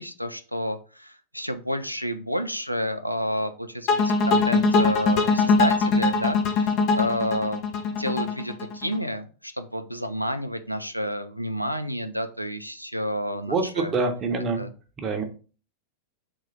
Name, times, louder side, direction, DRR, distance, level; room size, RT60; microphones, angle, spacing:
voice 1, 0.0-7.6 8.0-13.9 14.6-14.7, equal, 90° left, 8 dB, 0.4 m, -30 dB
sound 1, 3.9-9.0, left 4 dB, 40° left, 0.7 m, -21 dB
voice 2, 13.4-14.6 15.0-15.2, right 4 dB, 25° right, 5 dB, 0.9 m, -26 dB
3.8 x 3.2 x 4.1 m, 0.37 s
figure-of-eight pair, 90°, 0 cm